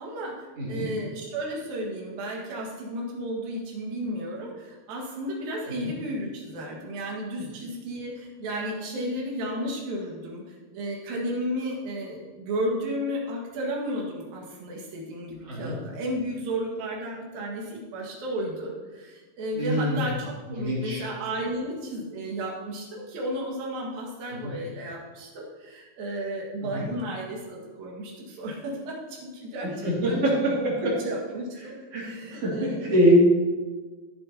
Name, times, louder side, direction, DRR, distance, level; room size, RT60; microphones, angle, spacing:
voice 1, 0.0-30.4 30.8-32.8, equal, 75° right, -3 dB, 3.4 m, -33 dB
voice 2, 0.6-0.9 5.8-5.9 15.5-15.8 19.5-20.0 20.5-21.0 24.4-24.5 26.6-26.9 29.8-30.5 31.6-33.1, equal, 45° right, -5 dB, 3.1 m, -26 dB
14.5 x 7.3 x 2.8 m, 1.3 s
omnidirectional pair, 4.2 m